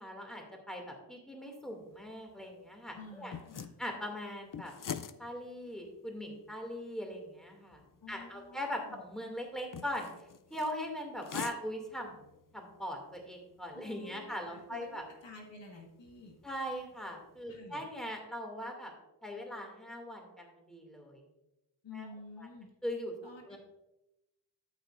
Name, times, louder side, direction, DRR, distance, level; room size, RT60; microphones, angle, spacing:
voice 1, 0.0-3.3 3.8-4.7 5.2-7.8 8.1-10.1 10.5-12.3 12.5-15.0 16.4-18.9 19.2-21.2 21.9-22.1 22.4-22.5 22.8-23.1 23.5-23.6, equal, ahead, 1 dB, 2.4 m, -40 dB
sound 1, 1.6-17.4, left 7 dB, 50° left, 0.5 m, -49 dB
voice 2, 2.9-3.7 8.0-9.0 13.7-16.4 17.5-17.9 21.8-22.7 23.2-23.6, left 3 dB, 90° left, 0 dB, 1.7 m, -50 dB
13.0 x 8.3 x 2.5 m, 0.93 s
wide cardioid pair, 70°, 42 cm